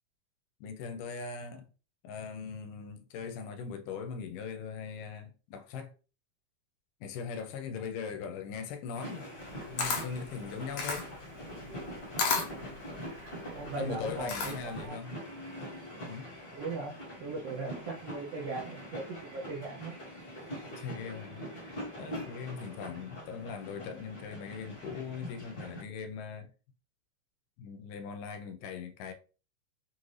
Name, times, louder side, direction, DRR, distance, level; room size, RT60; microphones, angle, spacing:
voice 1, 0.6-1.7 2.0-5.9 7.0-9.3 9.7-11.1 13.8-15.2 16.0-16.3 20.7-26.5 27.6-29.1, left 6 dB, 80° left, 2.1 m, -40 dB
sound 1, 8.9-25.8, equal, 40° left, 1.4 m, -44 dB
Camera, 9.4-14.8, left 4 dB, 65° left, 1.9 m, -34 dB
voice 2, 13.5-15.0 16.5-16.9 17.2-20.0, right 3 dB, 75° right, 1.4 m, -38 dB
5.7 x 2.6 x 3.1 m
omnidirectional pair, 3.7 m